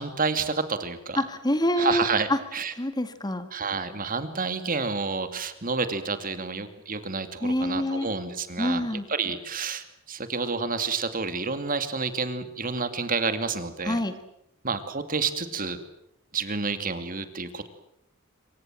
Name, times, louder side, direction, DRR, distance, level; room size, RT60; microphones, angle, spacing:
voice 1, 0.0-1.2 1.8-2.7 3.5-8.8 9.1-14.0 14.6-15.8 16.3-17.7, right 4 dB, 40° right, 10 dB, 2.5 m, -29 dB
voice 2, 1.2-2.4 2.8-3.5 7.4-8.1 8.6-9.0 13.9-14.1, left 1 dB, 20° left, 10 dB, 1.9 m, -26 dB
26.5 x 24.5 x 7.7 m, 0.79 s
head